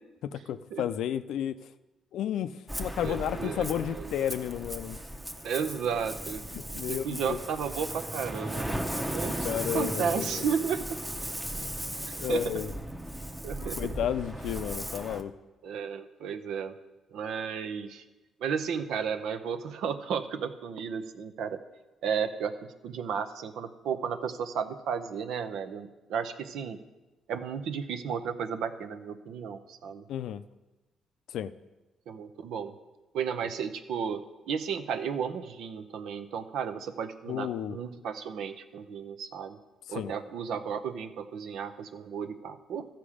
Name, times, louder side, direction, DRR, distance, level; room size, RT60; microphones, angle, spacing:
voice 1, 0.2-1.7 2.1-2.5 2.8-5.0 6.5-7.4 9.4-10.4 12.2-12.7 13.6-15.3 30.1-30.4 31.3-31.5 37.3-37.8 39.9-40.1, left 10 dB, 80° left, 12 dB, 0.4 m, -32 dB
Ocean, 2.7-15.2, right 1 dB, 10° right, 0.8 m, -36 dB
voice 2, 3.0-4.1 5.4-6.5 6.7-8.8 9.1-9.5 9.7-11.0 12.1-12.6 13.4-13.9 15.6-16.8 17.1-18.0 18.4-21.6 22.0-22.5 22.8-26.8 27.3-30.0 32.1-32.7 33.1-39.6 39.9-42.9, right 7 dB, 80° right, 9 dB, 0.7 m, -33 dB
14.0 x 6.0 x 5.0 m, 1.1 s
cardioid pair, 90°, 0 cm